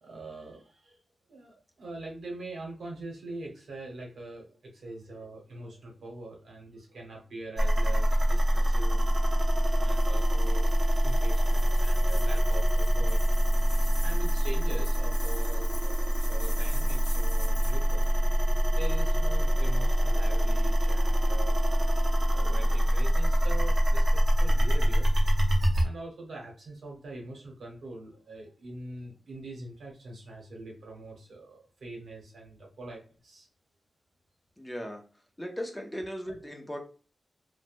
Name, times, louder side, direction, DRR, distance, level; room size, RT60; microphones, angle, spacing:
voice 1, 0.0-1.0 1.3-9.0 9.7-13.2 14.0-18.0 18.7-21.6 22.3-24.1 24.4-25.1 25.8-33.5, right 2 dB, 80° right, 0 dB, 1.1 m, -43 dB
sound 1, 7.6-25.8, equal, 40° right, 0.7 m, -24 dB
sound 2, 9.9-18.1, left 2 dB, 45° left, 0.9 m, -46 dB
voice 2, 34.6-35.0 35.4-36.8, equal, 10° left, 2 dB, 0.6 m, -37 dB
3.3 x 2.1 x 2.5 m, 0.37 s
wide cardioid pair, 100°, 0 cm